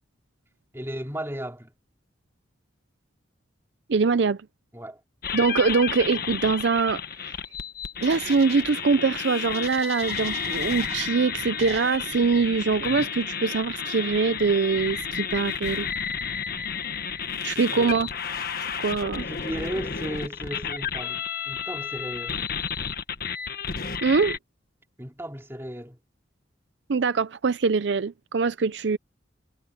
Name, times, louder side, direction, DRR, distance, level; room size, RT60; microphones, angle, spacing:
voice 1, 0.7-1.7 4.7-5.0 17.5-18.1 19.3-22.4 25.0-26.0, equal, 15° right, 3.1 m, -35 dB
voice 2, 3.9-4.4 5.3-7.4 8.0-15.9 17.4-18.1 18.8-19.3 24.0-24.4 26.9-29.0, right 4 dB, 65° right, 0.5 m, -23 dB
sound 1, 5.2-24.4, left 7 dB, 50° left, 1.5 m, -32 dB
sound 2, 8.0-8.6 9.5-11.1 11.6-12.0, right 6 dB, 35° right, 3.7 m, -40 dB
head